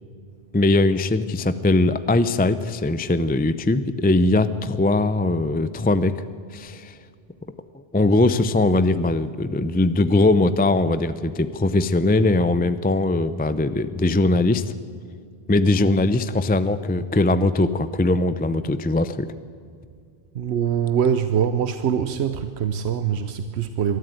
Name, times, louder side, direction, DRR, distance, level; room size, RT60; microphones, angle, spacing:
voice 1, 0.5-6.2 6.5-6.9 7.9-14.7 15.5-19.3, left 2 dB, 10° left, 13 dB, 0.4 m, -20 dB
voice 2, 20.3-24.0, right 8 dB, 90° right, 10 dB, 1.0 m, -23 dB
23.0 x 13.0 x 9.3 m, 2.3 s
omnidirectional pair, 1.1 m